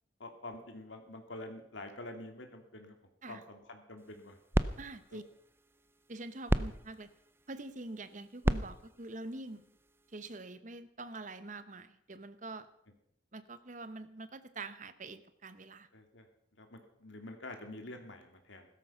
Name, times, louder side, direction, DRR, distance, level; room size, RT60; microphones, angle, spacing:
voice 1, 0.2-2.9 3.3-4.4 5.1-5.2 15.9-16.3 16.6-18.7, left 2 dB, 70° left, 4 dB, 2.7 m, -47 dB
sound 1, 4.0-10.4, right 1 dB, 10° right, 0.5 m, -37 dB
voice 2, 4.8-5.2 6.1-7.1 7.5-9.6 10.1-12.7 13.3-15.9, right 2 dB, 40° right, 13 dB, 0.9 m, -45 dB
16.0 x 13.5 x 5.7 m, 0.74 s
head